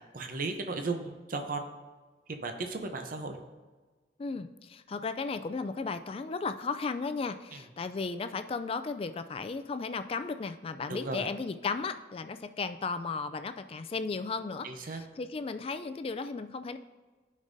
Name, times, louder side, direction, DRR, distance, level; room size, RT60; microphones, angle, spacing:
voice 1, 0.0-1.7 2.3-3.4 7.5-7.6 10.9-11.3 14.6-15.0, right 3 dB, 50° right, 5 dB, 0.7 m, -35 dB
voice 2, 4.2-16.8, left 4 dB, 30° left, 10 dB, 0.3 m, -35 dB
14.0 x 5.3 x 2.7 m, 1.3 s
head